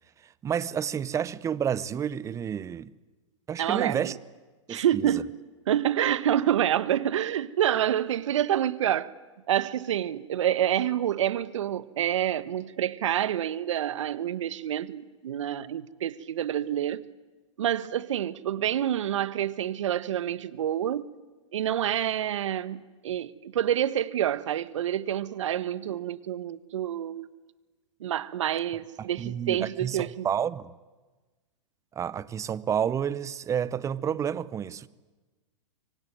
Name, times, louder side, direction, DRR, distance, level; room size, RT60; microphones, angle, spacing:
voice 1, 0.4-2.9 3.5-4.2 4.7-5.2 29.0-30.7 32.0-34.9, right 8 dB, 20° right, 0.8 m, -30 dB
voice 2, 3.6-4.1 4.7-5.4 5.7-9.1 9.5-17.1 17.6-21.1 21.5-27.3 28.0-30.3, right 11 dB, 70° right, 1.1 m, -27 dB
25.0 x 24.5 x 9.4 m
hypercardioid pair, 115°, 17 cm